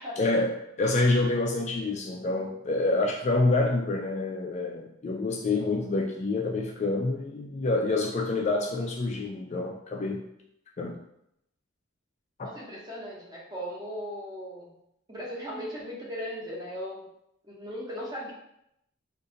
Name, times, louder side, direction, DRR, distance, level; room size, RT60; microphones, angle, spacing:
voice 1, 0.2-10.2 10.8-11.0 12.4-12.5, left 2 dB, 35° left, 0 dB, 0.3 m, -27 dB
voice 2, 12.4-14.8 15.1-17.1 17.4-18.3, equal, 20° right, -5 dB, 0.8 m, -37 dB
2.7 x 2.5 x 3.7 m, 0.77 s
head